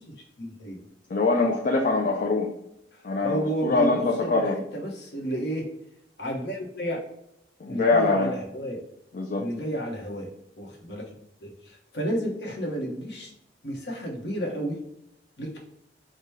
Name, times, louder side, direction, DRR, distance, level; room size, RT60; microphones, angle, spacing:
voice 1, 0.1-0.8 2.9-5.7 6.2-7.0 7.7-8.8 9.4-10.3 10.6-11.1 11.4-13.3 13.6-14.8 15.4-15.6, right 1 dB, 65° left, -1 dB, 1.1 m, -32 dB
voice 2, 1.1-2.5 3.0-4.6 7.6-8.3 9.1-9.5, left 3 dB, 50° left, -1 dB, 0.5 m, -23 dB
5.0 x 2.2 x 4.7 m, 0.80 s
head